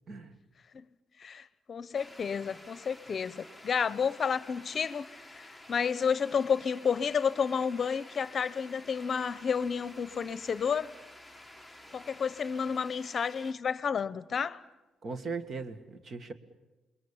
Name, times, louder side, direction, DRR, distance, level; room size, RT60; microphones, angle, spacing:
voice 1, 1.2-10.9 11.9-14.6, left 6 dB, 45° left, 0.8 m, -31 dB
sound 1, 1.9-13.5, left 1 dB, 5° right, 1.6 m, -51 dB
voice 2, 15.0-16.3, right 4 dB, 50° right, 1.8 m, -38 dB
28.0 x 21.5 x 7.3 m
cardioid pair, 90°, 0 cm